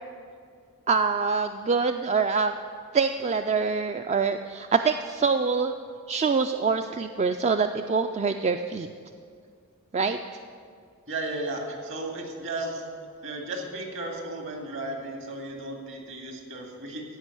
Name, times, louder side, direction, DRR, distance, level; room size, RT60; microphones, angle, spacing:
voice 1, 0.9-2.5 2.9-5.7 6.1-8.9 9.9-10.2, right 5 dB, 30° right, 7 dB, 0.3 m, -25 dB
voice 2, 11.1-12.8 13.2-17.0, right 2 dB, 60° right, 2 dB, 2.2 m, -34 dB
15.0 x 5.4 x 9.7 m, 2.2 s
head